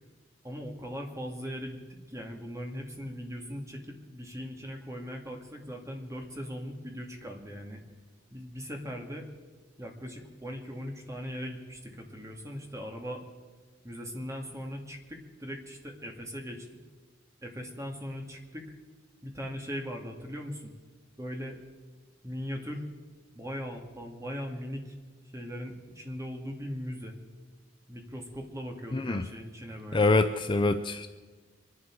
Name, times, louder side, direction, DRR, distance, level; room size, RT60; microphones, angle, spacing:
voice 1, 0.4-7.8 8.3-9.2 9.8-13.2 13.8-16.7 17.4-18.7 19.2-20.7 21.2-21.6 22.2-22.9 23.3-25.0 25.3-27.2 27.9-30.1, equal, 15° right, 1 dB, 2.2 m, -39 dB
voice 2, 28.9-29.2 29.9-31.1, left 2 dB, 25° left, 8 dB, 0.5 m, -25 dB
25.0 x 11.5 x 4.8 m, 1.4 s
head